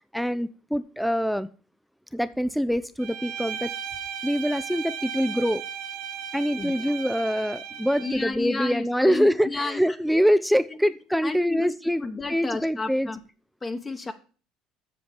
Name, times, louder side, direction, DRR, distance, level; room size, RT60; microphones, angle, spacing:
voice 1, 0.1-1.5 2.1-3.7 4.2-5.6 6.3-13.1, equal, ahead, 0.5 m, -24 dB
Bowed string instrument, 3.0-8.4, right 8 dB, 80° right, 1.3 m, -36 dB
voice 2, 6.6-6.9 8.0-9.9 10.8-10.9 11.2-11.8 12.0-13.2 13.6-14.1, left 3 dB, 25° left, 1.1 m, -32 dB
7.7 x 6.5 x 7.1 m
supercardioid pair, 90°, 0 cm